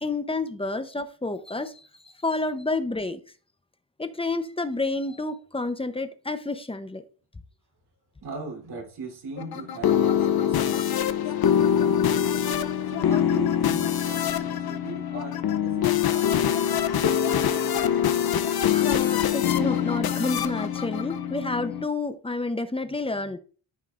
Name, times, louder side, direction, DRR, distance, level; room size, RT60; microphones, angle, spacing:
voice 1, 0.0-1.7 2.2-3.2 4.0-7.0 18.7-23.4, left 2 dB, 10° left, 9 dB, 0.8 m, -29 dB
voice 2, 8.2-10.8 11.2-12.1 12.8-17.1, right 3 dB, 55° right, 0 dB, 3.5 m, -40 dB
sound 1, 9.4-21.8, left 9 dB, 50° left, 0.7 m, -24 dB
13.5 x 5.2 x 2.5 m, 0.39 s
cardioid pair, 110°, 46 cm